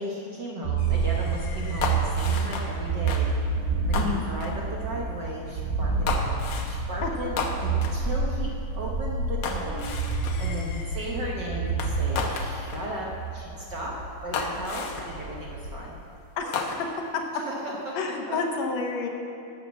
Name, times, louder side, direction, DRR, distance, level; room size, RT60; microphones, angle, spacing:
voice 1, 0.0-3.3 3.9-8.5 8.8-9.9 10.4-13.1 13.3-13.9 14.2-16.0 17.5-17.9 18.3-18.4, equal, 60° right, -2 dB, 1.2 m, -36 dB
sound 1, 0.6-15.9, right 4 dB, 90° right, 2.6 m, -29 dB
sound 2, 0.8-2.8 3.1-3.3 3.9-4.6 6.1-6.8 7.4-8.0 9.4-11.1 11.8-12.9 13.6-13.7 14.3-15.2 16.5-17.1, left 4 dB, 85° left, 1.0 m, -33 dB
voice 2, 4.0-4.3 7.0-7.1 16.4-16.8 17.1-17.2 18.0-19.1, left 4 dB, 70° left, 3 dB, 2.1 m, -29 dB
11.5 x 7.1 x 7.2 m, 2.7 s
omnidirectional pair, 3.3 m